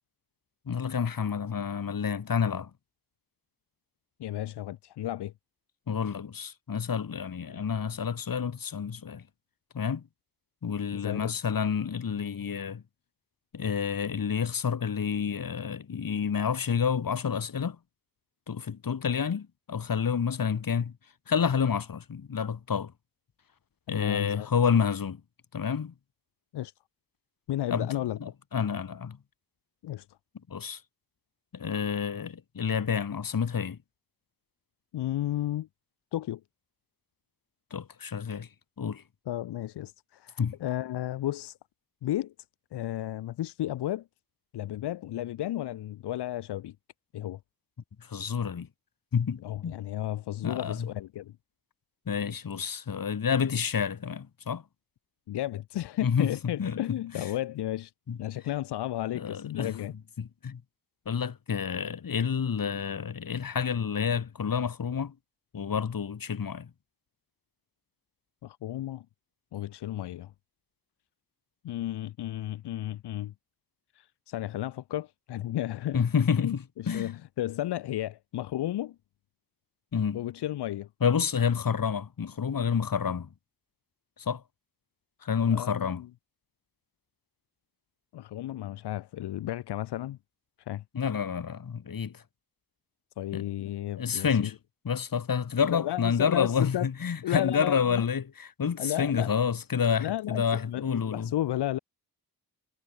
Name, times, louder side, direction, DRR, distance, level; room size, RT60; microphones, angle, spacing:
voice 1, 0.7-2.7 5.9-9.2 9.7-10.0 10.6-12.8 13.5-17.8 18.5-20.9 21.3-22.9 23.9-25.2 25.5-25.9 27.7-29.2 30.5-30.8 31.5-33.8 37.7-38.5 38.8-39.0 40.4-40.6 48.0-48.7 49.1-49.8 50.4-50.9 52.1-54.6 56.0-56.3 56.6-57.3 58.1-58.2 59.1-59.8 60.2-60.6 61.1-65.1 65.5-66.7 75.9-77.1 79.9-80.2 81.0-83.3 84.2-84.4 85.2-86.0 90.9-92.2 93.3-93.4 94.0-94.6 94.8-101.3, left 7 dB, 60° left, 2.0 m, -29 dB
voice 2, 4.2-5.3 10.9-11.4 23.9-24.5 26.5-26.7 27.5-28.2 29.8-30.1 34.9-35.7 36.1-36.4 39.3-41.6 42.0-42.3 42.7-44.1 44.5-46.7 47.1-47.4 49.4-51.4 55.3-57.9 58.2-59.9 68.4-69.1 69.5-70.3 71.6-73.3 73.9-76.1 76.4-79.0 80.1-80.9 85.5-86.1 88.1-90.2 90.6-90.8 93.2-94.5 95.7-96.9 97.2-98.0 98.8-99.3 100.0-101.8, left 13 dB, 90° left, 0.6 m, -33 dB
cardioid pair, 70°, 39 cm